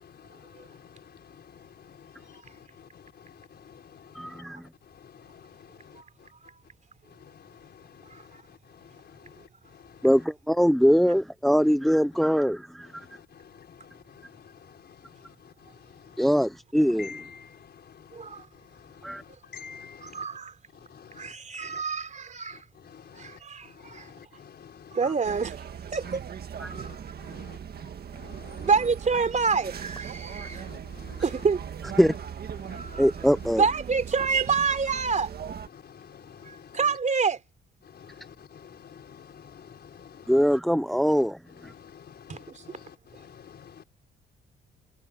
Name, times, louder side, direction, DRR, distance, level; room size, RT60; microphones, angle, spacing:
voice 1, 0.0-4.4 4.8-6.3 7.1-10.1 12.9-16.3 17.0-20.3 20.9-21.3 21.6-21.8 22.5-25.0 26.7-27.0 28.2-28.7 30.2-31.2 32.6-33.0 35.7-36.8 37.8-40.5 41.6-43.8, left 7 dB, 55° left, 5.2 m, -50 dB
voice 2, 4.1-4.6 10.0-13.1 16.2-17.2 19.0-19.2 26.6-26.8 32.0-32.1 33.0-33.6 40.3-41.7, equal, ahead, 1.0 m, -22 dB
voice 3, 8.1-8.4 18.1-18.5 20.0-20.6 21.1-22.7 23.1-24.1 24.9-25.7 25.9-26.2 26.7-27.1 28.6-30.7 31.2-31.6 32.7-33.1 33.6-35.3 36.4-37.4 42.3-42.8, right 5 dB, 40° right, 4.0 m, -28 dB
sound 1, 25.2-35.7, right 8 dB, 55° right, 1.9 m, -39 dB
cardioid pair, 90°, 20 cm